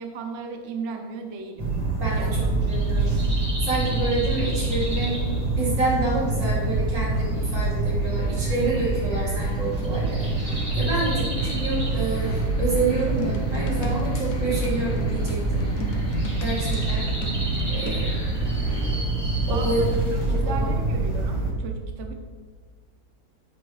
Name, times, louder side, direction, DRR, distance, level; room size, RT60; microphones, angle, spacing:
voice 1, 0.0-1.7 2.1-2.5 10.9-11.3 16.7-16.9 19.4-22.2, right 5 dB, 50° right, 4 dB, 0.9 m, -36 dB
sound 1, 1.6-21.5, right 2 dB, 25° right, 1.5 m, -25 dB
voice 2, 2.0-3.2 3.6-5.1 5.6-11.3 11.5-16.1 16.4-17.0 17.7-18.1 19.5-20.0 20.3-20.7, right 3 dB, 80° right, -7 dB, 3.7 m, -28 dB
sound 2, 8.0-19.0, left 2 dB, 30° left, 1.8 m, -43 dB
sound 3, 13.0-18.1, left 2 dB, 55° left, 1.2 m, -35 dB
9.0 x 8.9 x 3.3 m, 1.5 s
omnidirectional pair, 2.0 m